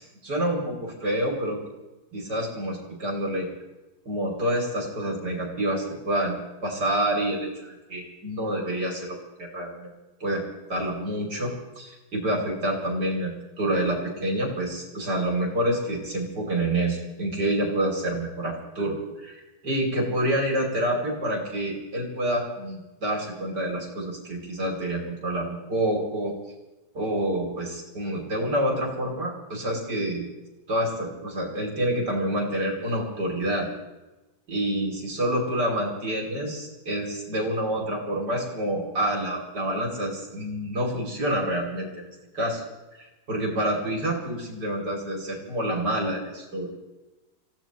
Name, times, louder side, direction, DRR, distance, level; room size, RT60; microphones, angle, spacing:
voice 1, 0.0-1.6 2.1-3.5 4.1-9.9 10.2-10.4 10.7-13.3 13.6-26.3 26.9-30.2 30.7-33.7 34.5-42.1 42.3-42.6 43.0-46.7, right 1 dB, 50° right, 0 dB, 3.6 m, -28 dB
27.5 x 16.5 x 3.1 m, 1.1 s
omnidirectional pair, 2.3 m